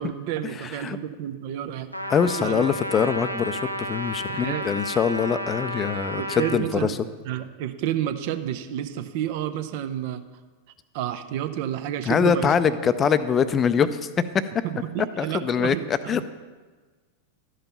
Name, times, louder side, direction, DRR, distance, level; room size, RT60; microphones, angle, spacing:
voice 1, 0.0-1.9 2.4-2.6 4.3-4.7 6.2-7.0 7.2-10.2 10.9-12.5 14.6-16.2, right 11 dB, 50° right, 9 dB, 0.6 m, -30 dB
voice 2, 0.6-1.0 2.1-7.0 12.0-14.1 15.2-16.2, left 7 dB, 25° left, 13 dB, 0.5 m, -23 dB
Trumpet, 1.9-6.6, equal, 90° right, 0.6 m, -32 dB
12.5 x 5.2 x 5.6 m, 1.4 s
figure-of-eight pair, 90°, 0 cm